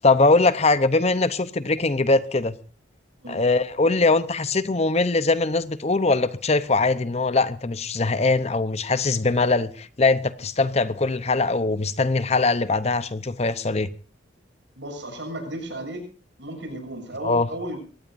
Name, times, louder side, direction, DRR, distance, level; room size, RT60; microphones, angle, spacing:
voice 1, 0.0-2.5 3.3-13.9 17.2-17.5, left 3 dB, 35° left, 0.7 m, -21 dB
voice 2, 14.8-16.0 16.4-17.8, right 1 dB, 65° right, 7.4 m, -34 dB
24.0 x 17.5 x 2.6 m
head